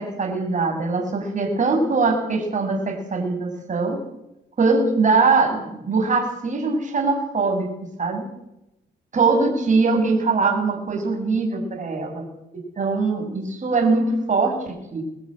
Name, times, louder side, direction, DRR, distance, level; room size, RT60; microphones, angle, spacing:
voice 1, 0.0-4.0 4.6-7.7 8.0-8.3 9.1-12.3 12.8-15.0, right 4 dB, 40° right, 3 dB, 7.3 m, -22 dB
22.0 x 15.0 x 9.0 m, 0.86 s
cardioid pair, 90°, 20 cm